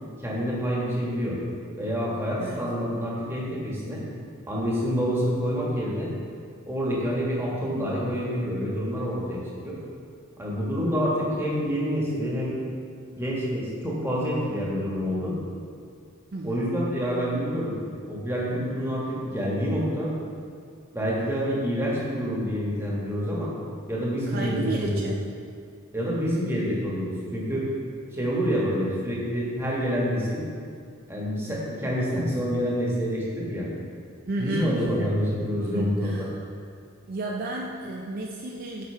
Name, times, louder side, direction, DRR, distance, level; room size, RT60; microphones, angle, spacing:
voice 1, 0.2-1.4 1.8-4.0 4.5-6.1 6.7-9.8 10.4-12.6 13.1-15.3 16.4-17.8 18.1-20.1 20.9-23.5 23.9-25.1 25.9-27.7 28.1-30.4 31.1-33.7 34.4-36.1, equal, 10° right, -5 dB, 1.3 m, -27 dB
voice 2, 2.4-2.7 16.3-16.7 24.3-25.2 34.3-35.1 35.7-36.3 37.1-38.8, right 2 dB, 40° right, -1 dB, 0.4 m, -32 dB
8.2 x 4.6 x 4.3 m, 2.3 s
head